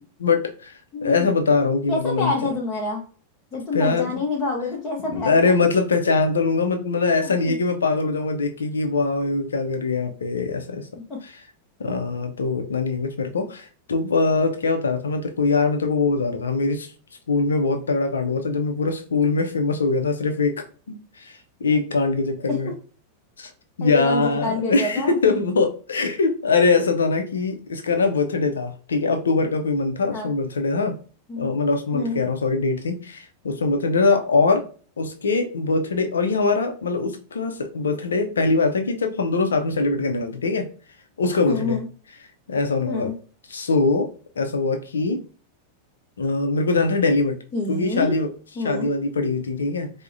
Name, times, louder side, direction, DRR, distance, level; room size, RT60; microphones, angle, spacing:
voice 1, 0.0-2.3 3.7-4.1 5.1-10.9 11.2-11.4 11.8-16.9 17.3-22.7 23.4-23.5 23.8-31.0 31.4-34.7 35.0-40.7 41.2-41.8 42.5-43.1 43.5-45.2 46.2-47.4 47.7-48.3 48.6-49.9, left 3 dB, 70° left, 0.5 m, -22 dB
voice 2, 0.9-1.3 1.9-3.0 3.5-5.5 7.2-7.6 11.1-11.2 22.5-22.6 23.8-25.2 30.1-30.3 31.3-31.5 31.9-32.2 41.5-41.8 42.9-43.1 47.5-48.1 48.6-48.9, left 3 dB, 25° left, 0.7 m, -27 dB
4.6 x 2.1 x 2.5 m
figure-of-eight pair, 90°, 0 cm